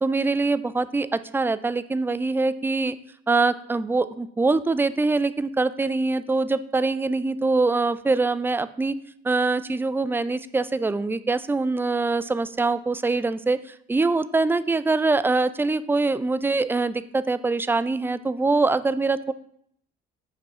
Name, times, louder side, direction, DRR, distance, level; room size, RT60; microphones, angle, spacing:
voice 1, 0.0-3.0 3.3-9.0 9.2-19.3, right 3 dB, 5° right, 14 dB, 0.3 m, -24 dB
5.2 x 4.2 x 5.8 m, 0.68 s
hypercardioid pair, 50°, 30 cm